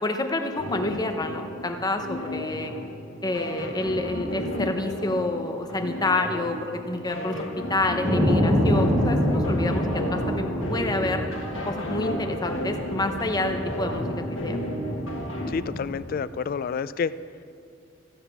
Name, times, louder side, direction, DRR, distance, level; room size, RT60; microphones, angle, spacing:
voice 1, 0.0-2.7 3.2-9.9 10.1-11.2 11.7-14.1 14.4-14.6, left 2 dB, 20° left, 5 dB, 0.8 m, -28 dB
sound 1, 0.5-15.5, equal, 80° left, 1.5 m, -33 dB
sound 2, 8.0-16.0, equal, 25° right, 1.9 m, -27 dB
voice 2, 15.5-17.1, left 6 dB, 45° left, 15 dB, 0.3 m, -29 dB
14.5 x 7.1 x 5.9 m, 2.4 s
head